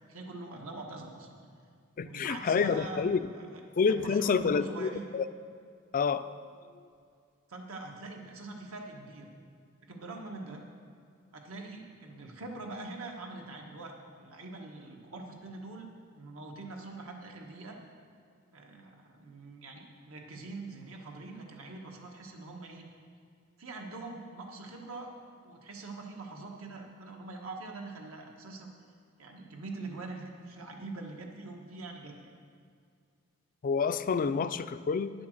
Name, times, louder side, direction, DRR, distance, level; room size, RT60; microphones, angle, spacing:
voice 1, 0.1-1.4 2.0-5.1 7.5-9.3 9.9-10.6 11.3-15.9 16.1-17.8 18.5-22.8 23.6-25.1 25.4-28.7 29.2-32.3, right 3 dB, 75° right, 1 dB, 1.4 m, -43 dB
voice 2, 2.0-3.2 3.8-5.3 5.9-6.3 33.6-35.1, left 5 dB, 40° left, 13 dB, 0.3 m, -28 dB
10.0 x 6.9 x 6.6 m, 2.2 s
head